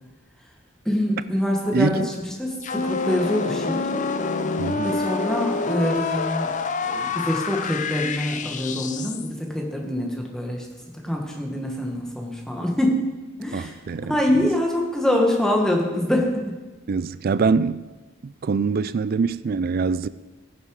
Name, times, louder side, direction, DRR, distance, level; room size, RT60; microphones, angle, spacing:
voice 1, 0.8-2.1 2.4-3.9 4.8-6.5 6.8-10.7 11.0-13.0 13.4-13.8 14.0-16.5, left 1 dB, 5° left, 1.6 m, -25 dB
voice 2, 1.7-2.1 4.6-5.0 13.5-14.5 16.9-17.9 18.2-20.1, right 4 dB, 45° right, 0.3 m, -24 dB
sound 1, 2.6-9.3, left 4 dB, 40° left, 0.6 m, -27 dB
15.0 x 7.2 x 4.8 m
head